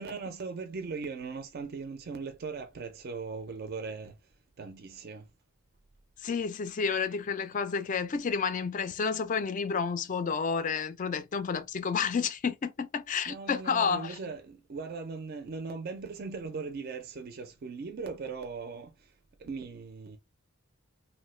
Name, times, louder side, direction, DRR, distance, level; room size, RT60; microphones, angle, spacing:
voice 1, 0.0-5.3 13.3-20.2, right 4 dB, 45° right, 0.4 m, -39 dB
voice 2, 6.2-14.2, left 5 dB, 35° left, 0.3 m, -30 dB
3.0 x 2.1 x 3.0 m
head